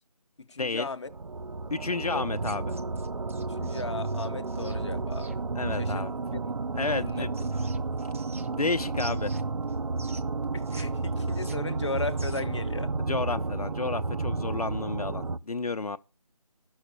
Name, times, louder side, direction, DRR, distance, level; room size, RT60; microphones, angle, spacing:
voice 1, 0.4-1.1 2.1-2.3 3.4-5.4 5.8-6.1 6.3-6.4 6.9-7.3 10.5-12.9, left 3 dB, 50° left, 0.9 m, -36 dB
sound 1, 1.1-15.4, right 3 dB, 70° right, 0.6 m, -31 dB
voice 2, 1.7-2.8 5.5-6.1 6.7-7.3 8.6-9.3 13.0-16.0, left 3 dB, 75° left, 0.7 m, -31 dB
sound 2, 2.4-5.4 6.8-8.7 9.0-10.8 11.1-12.6, right 2 dB, 20° right, 0.7 m, -48 dB
10.5 x 6.5 x 8.0 m
figure-of-eight pair, 165°, 19 cm